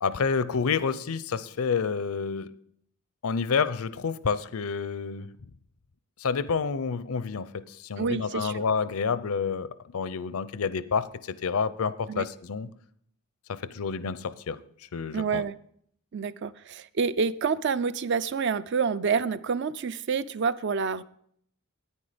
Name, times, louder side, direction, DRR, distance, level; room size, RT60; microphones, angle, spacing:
voice 1, 0.0-2.5 3.2-5.3 6.2-12.7 13.5-14.6 14.9-15.4, left 5 dB, 80° left, 0.6 m, -29 dB
voice 2, 8.0-8.6 12.1-12.3 15.1-15.5 16.1-21.0, right 5 dB, 55° right, 0.4 m, -28 dB
9.9 x 9.6 x 5.0 m
head